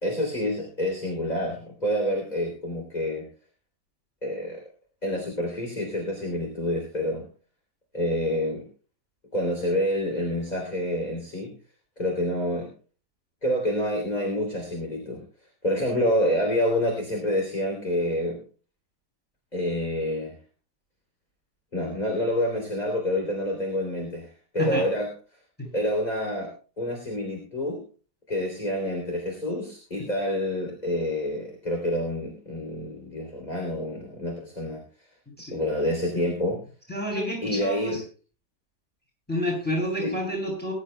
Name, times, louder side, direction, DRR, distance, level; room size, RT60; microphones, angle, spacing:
voice 1, 0.0-3.3 4.2-4.6 5.0-7.3 7.9-8.7 9.3-11.5 12.0-12.7 13.4-15.2 15.6-18.4 19.5-20.4 21.7-25.1 25.7-27.8 28.3-34.8 35.5-36.6 37.4-38.0 40.0-40.2, left 1 dB, 25° left, 1 dB, 3.4 m, -28 dB
voice 2, 36.9-38.0 39.3-40.7, equal, 5° left, 0 dB, 7.8 m, -29 dB
21.5 x 11.0 x 2.3 m, 0.37 s
omnidirectional pair, 1.7 m